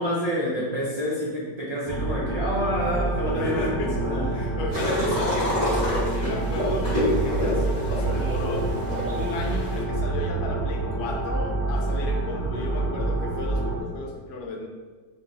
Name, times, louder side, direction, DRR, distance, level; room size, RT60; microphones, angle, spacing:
voice 1, 0.0-4.3, equal, 70° right, -8 dB, 0.3 m, -28 dB
sound 1, 1.8-13.8, right 2 dB, 25° left, 0.5 m, -27 dB
voice 2, 3.3-4.0 4.3-8.7 9.1-14.7, left 2 dB, 75° left, 1 dB, 1.1 m, -34 dB
sound 2, 4.7-9.8, equal, 25° right, 1.5 m, -28 dB
3.7 x 2.7 x 3.9 m, 1.5 s
omnidirectional pair, 1.9 m